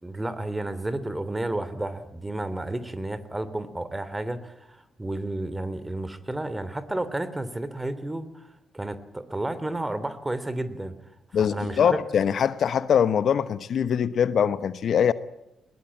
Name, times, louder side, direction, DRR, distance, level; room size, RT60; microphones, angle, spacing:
voice 1, 0.0-10.9 11.4-12.0, right 1 dB, 15° right, 3.3 m, -32 dB
voice 2, 11.3-15.1, left 8 dB, 60° left, 1.0 m, -23 dB
21.0 x 19.5 x 8.6 m
hypercardioid pair, 40°, 0 cm